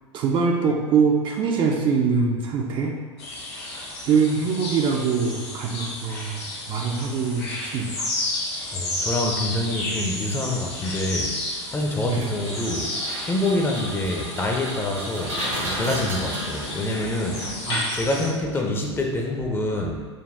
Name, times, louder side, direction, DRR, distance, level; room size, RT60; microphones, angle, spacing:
voice 1, 0.1-3.0 4.1-6.4 6.7-8.1 12.0-12.3 17.7-17.9, right 5 dB, 35° right, 2 dB, 0.4 m, -23 dB
sound 1, 3.2-18.3, left 2 dB, 60° left, 1.4 m, -32 dB
voice 2, 8.7-11.3 11.7-12.9 13.2-17.6 17.9-20.1, left 1 dB, 15° left, 0 dB, 0.6 m, -26 dB
Engine, 12.2-17.9, right 1 dB, 75° right, 1.4 m, -33 dB
5.1 x 2.3 x 3.5 m, 1.5 s
figure-of-eight pair, 90°, 15 cm